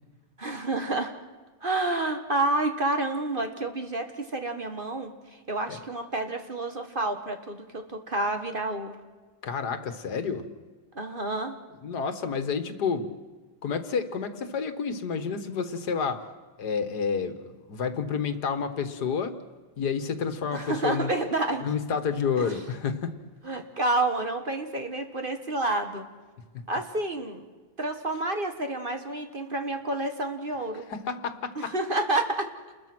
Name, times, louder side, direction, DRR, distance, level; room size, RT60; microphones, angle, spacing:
voice 1, 0.4-1.1 1.6-9.0 10.9-11.5 20.5-21.7 22.4-22.6 23.4-26.1 26.7-27.4 27.8-30.9 31.5-32.5, right 2 dB, 35° right, 6 dB, 1.6 m, -29 dB
voice 2, 9.4-10.5 11.8-13.1 13.6-16.3 16.6-17.4 17.7-19.3 19.8-21.1 21.6-23.2 26.5-26.6 30.9-31.7, left 6 dB, 75° left, 10 dB, 1.9 m, -29 dB
29.0 x 21.0 x 6.1 m, 1.3 s
omnidirectional pair, 1.8 m